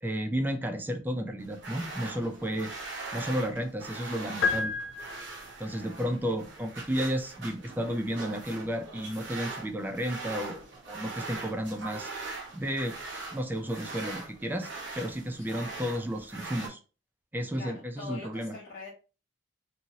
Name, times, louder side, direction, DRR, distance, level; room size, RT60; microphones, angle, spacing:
voice 1, 0.0-2.7 3.1-4.7 5.6-12.1 12.5-13.0 13.3-14.7 15.0-16.8 17.3-18.6, equal, 10° right, 6 dB, 0.4 m, -32 dB
sound 1, 1.4-16.7, right 3 dB, 65° right, 0.9 m, -41 dB
voice 2, 2.2-2.7 5.7-6.1 15.4-15.6 17.5-18.9, left 3 dB, 50° left, -6 dB, 0.8 m, -45 dB
sound 2, 4.4-5.7, left 5 dB, 75° left, 0.4 m, -30 dB
2.7 x 2.7 x 2.7 m, 0.34 s
head